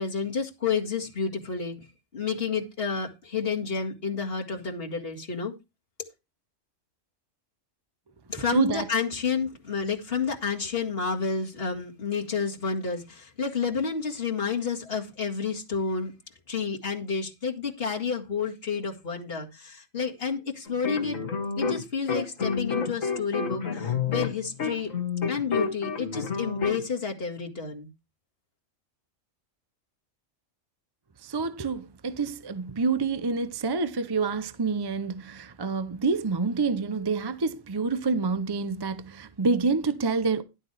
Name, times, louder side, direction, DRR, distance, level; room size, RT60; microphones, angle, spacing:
voice 1, 0.0-1.7 2.1-5.5 8.3-16.1 16.5-21.2 21.6-24.9 25.3-27.9, left 5 dB, 45° left, 2.2 m, -30 dB
voice 2, 8.5-8.9 31.2-40.4, right 4 dB, 30° right, 0.5 m, -27 dB
sound 1, 20.7-21.8 22.1-26.8, left 5 dB, 80° left, 2.1 m, -29 dB
12.0 x 7.7 x 3.3 m
omnidirectional pair, 1.4 m